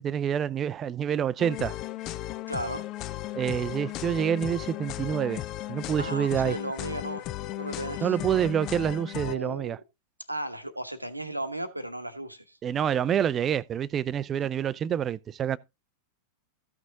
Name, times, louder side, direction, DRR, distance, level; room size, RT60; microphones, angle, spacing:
voice 1, 0.0-1.7 3.3-5.4 5.7-6.6 8.0-9.8 12.6-15.6, right 9 dB, 25° right, 0.5 m, -27 dB
sound 1, 1.4-9.3, left 15 dB, 40° left, 0.6 m, -36 dB
voice 2, 2.5-2.8 6.0-7.2 7.6-8.2 9.2-9.8 10.3-12.6, right 1 dB, 85° right, 1.2 m, -35 dB
14.5 x 6.2 x 3.8 m
figure-of-eight pair, 90°, 0 cm